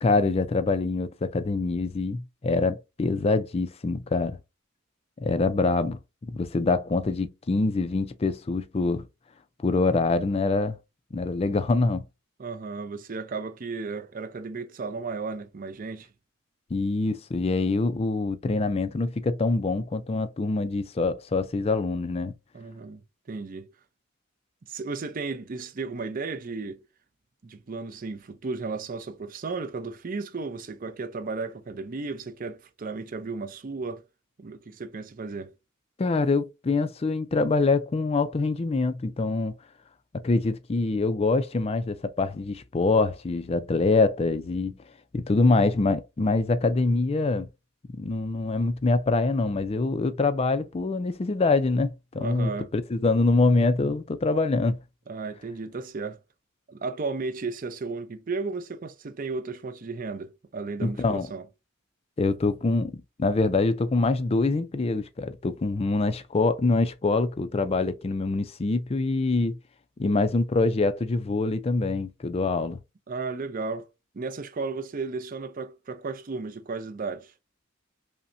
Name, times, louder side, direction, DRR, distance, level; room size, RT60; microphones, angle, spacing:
voice 1, 0.0-4.4 5.2-9.1 9.6-10.8 11.1-12.0 16.7-22.3 36.0-39.6 40.2-44.8 45.1-47.5 47.9-54.8 60.8-61.3 62.2-69.6 70.0-72.8, left 3 dB, 30° left, 0.4 m, -25 dB
voice 2, 12.4-16.1 22.5-23.0 23.3-23.7 24.7-26.8 27.4-34.0 34.4-35.5 52.2-52.7 55.1-56.2 56.7-61.4 73.1-73.9 74.1-77.3, right 4 dB, 40° right, 0.5 m, -34 dB
5.3 x 2.1 x 2.5 m
head